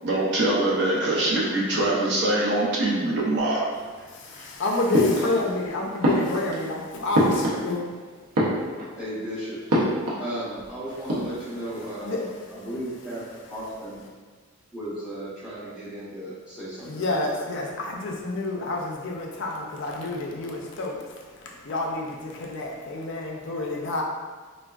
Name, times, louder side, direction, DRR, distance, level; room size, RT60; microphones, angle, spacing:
voice 1, 0.0-3.6, right 1 dB, 50° right, -4 dB, 0.6 m, -23 dB
voice 2, 4.4-7.8 12.0-12.3 16.8-24.0, left 2 dB, 55° left, -1 dB, 0.4 m, -29 dB
sound 1, 4.9-5.6 6.0-7.9 8.2-9.1 9.7-10.3 10.6-10.7 10.9-11.6, equal, 90° right, 0.7 m, -25 dB
voice 3, 9.0-9.6 10.2-14.0 14.7-17.2, right 1 dB, 5° right, -11 dB, 0.7 m, -35 dB
3.4 x 2.2 x 2.3 m, 1.5 s
head